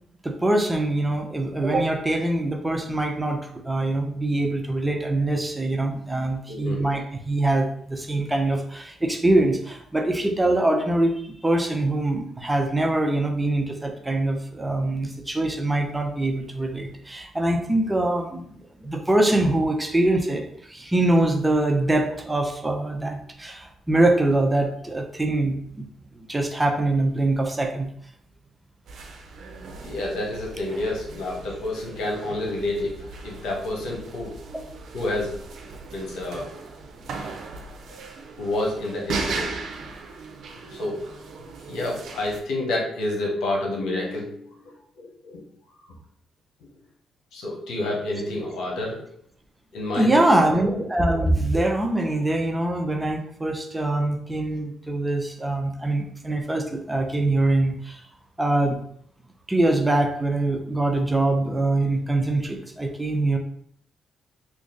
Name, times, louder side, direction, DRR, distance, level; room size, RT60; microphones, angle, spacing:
voice 1, 0.2-25.9 26.1-27.9 49.9-58.0 58.4-58.8 59.5-63.4, right 2 dB, 15° right, 3 dB, 0.7 m, -23 dB
voice 2, 6.5-6.8 29.8-34.3 34.9-35.3 35.9-36.5 37.9-38.1 38.4-39.5 40.4-40.9 41.7-44.5 45.0-45.4 47.3-49.0 49.7-50.3, left 2 dB, 80° left, -2 dB, 1.1 m, -29 dB
sound 1, 28.9-42.4, right 4 dB, 70° right, 0.6 m, -37 dB
3.1 x 2.5 x 3.9 m, 0.66 s
supercardioid pair, 60°, 0 cm